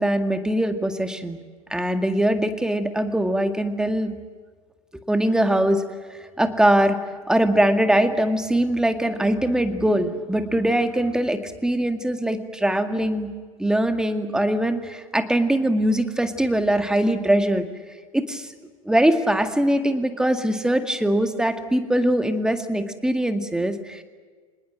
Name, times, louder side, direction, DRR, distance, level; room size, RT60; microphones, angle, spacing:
voice 1, 0.0-1.4 1.7-4.1 5.1-5.8 6.4-7.0 7.3-13.3 13.6-17.7 18.1-18.5 18.9-24.0, right 1 dB, 5° right, 8 dB, 2.1 m, -22 dB
26.0 x 20.0 x 9.1 m, 1.5 s
figure-of-eight pair, 80°, 18 cm